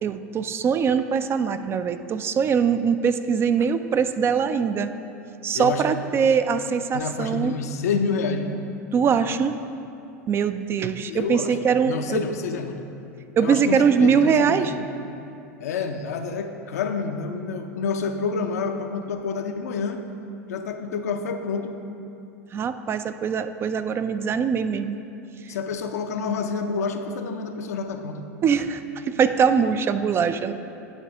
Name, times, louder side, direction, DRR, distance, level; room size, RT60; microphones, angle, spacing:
voice 1, 0.0-4.9 5.4-7.5 8.9-9.6 10.3-12.2 13.4-14.7 22.5-25.0 25.4-25.5 28.4-30.5, right 6 dB, 30° right, 10 dB, 0.3 m, -22 dB
voice 2, 6.9-8.5 11.1-11.6 11.9-12.9 13.4-14.7 15.6-20.0 20.5-21.8 25.5-28.3, left 5 dB, 80° left, 6 dB, 0.5 m, -28 dB
9.0 x 3.4 x 6.2 m, 2.7 s
hypercardioid pair, 95°, 8 cm